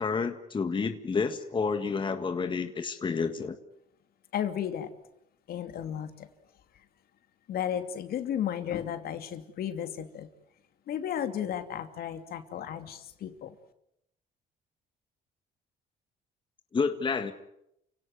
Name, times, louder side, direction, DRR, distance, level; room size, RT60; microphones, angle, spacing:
voice 1, 0.0-3.6 16.7-17.3, left 5 dB, 30° left, 7 dB, 1.8 m, -29 dB
voice 2, 4.3-4.9 5.5-6.3 7.5-10.3 10.9-13.5, left 9 dB, 65° left, 8 dB, 2.7 m, -34 dB
29.5 x 17.5 x 9.5 m, 0.82 s
cardioid pair, 110°, 17 cm